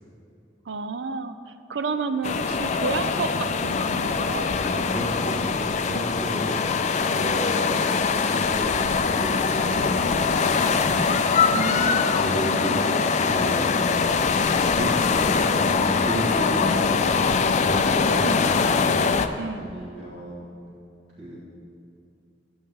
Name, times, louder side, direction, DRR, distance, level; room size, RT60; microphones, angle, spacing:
voice 1, 0.7-4.4 11.5-12.2 18.2-18.4 19.4-19.6, right 4 dB, 70° right, 10 dB, 0.5 m, -31 dB
sound 1, 2.2-19.3, left 5 dB, 40° left, 0.4 m, -22 dB
voice 2, 4.7-5.4 5.9-6.7 7.1-7.8 8.2-10.8 12.1-12.8 13.3-13.7 14.7-15.0 15.3-16.9 17.6-19.0 19.5-20.5 21.2-21.4, right 1 dB, 45° right, -11 dB, 2.1 m, -33 dB
11.0 x 8.8 x 3.7 m, 2.6 s
head